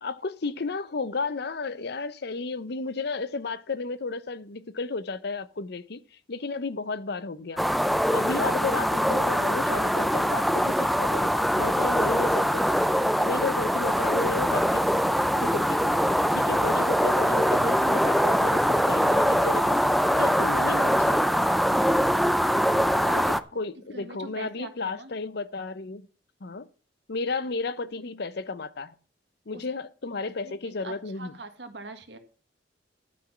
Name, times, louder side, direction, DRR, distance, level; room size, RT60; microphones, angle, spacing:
voice 1, 0.0-6.0 6.3-7.6 8.1-12.7 13.2-15.0 15.4-16.0 16.3-19.8 20.2-21.2 23.1-23.2 23.5-26.0 26.4-26.7 27.1-28.9 29.5-31.3, left 3 dB, 60° left, 0.7 m, -33 dB
sound 1, 7.6-23.4, equal, ahead, 0.5 m, -23 dB
voice 2, 22.9-25.1 29.5-29.7 30.2-32.2, right 3 dB, 70° right, 1.7 m, -43 dB
12.0 x 6.0 x 7.2 m
head